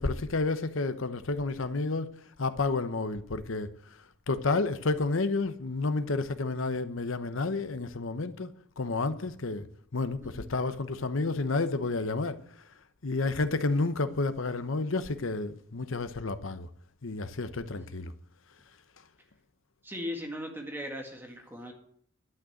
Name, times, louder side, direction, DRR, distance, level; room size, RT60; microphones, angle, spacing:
voice 1, 0.0-4.0 4.3-8.5 8.8-9.6 9.9-12.4 13.0-16.7 17.0-18.1, left 3 dB, 85° left, 0.9 m, -30 dB
voice 2, 19.8-21.7, left 1 dB, 10° right, 1.8 m, -38 dB
11.5 x 6.4 x 9.1 m
head